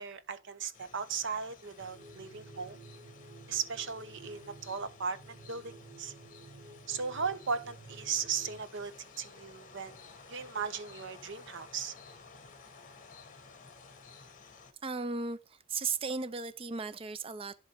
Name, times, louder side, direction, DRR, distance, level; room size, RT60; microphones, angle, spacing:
voice 1, 0.0-2.8 3.5-6.1 6.9-11.9, right 6 dB, 60° right, 0.8 m, -37 dB
sound 1, 0.7-14.7, left 4 dB, 40° left, 1.3 m, -54 dB
sound 2, 1.8-8.6, right 3 dB, 45° right, 1.3 m, -53 dB
voice 2, 14.8-17.6, right 4 dB, 25° right, 0.4 m, -36 dB
11.0 x 3.7 x 4.5 m
head